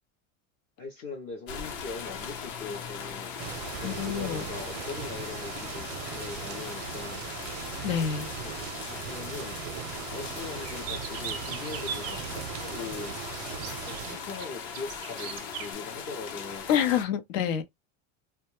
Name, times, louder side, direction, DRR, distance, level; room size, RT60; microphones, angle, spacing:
voice 1, 0.8-3.3 3.8-7.2 8.3-8.5 9.0-9.6 10.1-13.2 13.9-16.7, left 4 dB, 30° left, 0.4 m, -40 dB
sound 1, 1.5-17.0, left 6 dB, 55° left, 0.8 m, -39 dB
sound 2, 3.4-14.2, right 10 dB, 85° right, 0.6 m, -39 dB
voice 2, 3.8-4.4 7.8-8.3 16.7-17.6, left 8 dB, 85° left, 0.8 m, -27 dB
sound 3, 10.6-12.7 13.5-15.7, right 9 dB, 40° right, 0.4 m, -40 dB
2.2 x 2.1 x 2.9 m
supercardioid pair, 160°, 39 cm